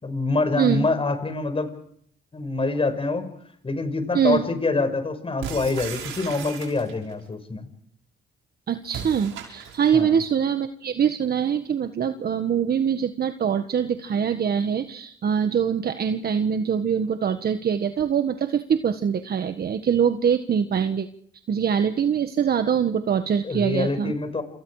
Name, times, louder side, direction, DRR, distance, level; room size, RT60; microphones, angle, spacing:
voice 1, 0.0-1.7 2.3-3.3 3.6-7.7 9.9-10.2 23.4-24.4, left 3 dB, 30° left, 9 dB, 5.8 m, -25 dB
sound 1, 5.4-7.1 8.9-10.0, right 7 dB, 85° right, 6.2 m, -36 dB
voice 2, 8.7-21.1 21.5-24.1, right 7 dB, 50° right, 8 dB, 1.5 m, -23 dB
28.0 x 27.5 x 4.9 m, 0.65 s
cardioid pair, 90°, 20 cm